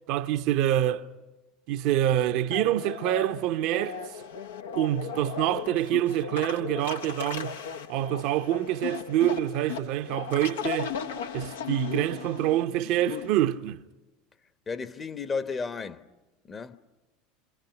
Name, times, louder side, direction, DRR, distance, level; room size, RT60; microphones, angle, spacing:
voice 1, 0.1-1.1 1.7-4.0 4.7-7.6 7.9-10.9 11.3-13.8, right 13 dB, 60° right, 0.7 m, -26 dB
sound 1, 2.5-13.3, left 7 dB, 80° left, 1.1 m, -36 dB
voice 2, 14.7-16.1 16.4-16.8, left 5 dB, 30° left, 1.1 m, -33 dB
27.5 x 26.5 x 5.8 m
hypercardioid pair, 80°, 0 cm